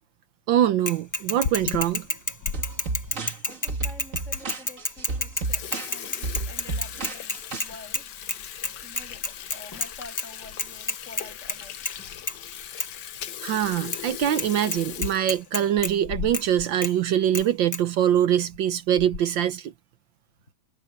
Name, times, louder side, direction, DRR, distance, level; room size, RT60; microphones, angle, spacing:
voice 1, 0.5-2.1 3.2-3.3 13.4-19.7, right 10 dB, 75° right, 1.5 m, -23 dB
Bicycle / Mechanisms, 0.9-8.0 8.3-8.4 8.6-9.9 10.2-10.3 10.6-11.6 11.8-12.0 12.3-12.4 12.8-12.9 13.9-14.0 14.4-14.5 14.7-15.9 16.3-16.4 16.8-16.9 17.3-17.4 17.7-17.8, left 2 dB, 15° left, 0.8 m, -29 dB
Water tap faucet / Sink (filling or washing), 1.1-2.6 3.1-3.2 3.9-4.0 4.3-4.4 4.8-5.0 5.3-16.7 17.0-17.1 17.4-17.5 18.3-18.6 19.0-19.4, left 9 dB, 65° left, 1.5 m, -37 dB
sound 1, 2.5-7.6, right 3 dB, 40° right, 2.1 m, -32 dB
voice 2, 3.4-8.1 8.8-11.9, left 2 dB, 35° left, 8.4 m, -47 dB
omnidirectional pair, 2.2 m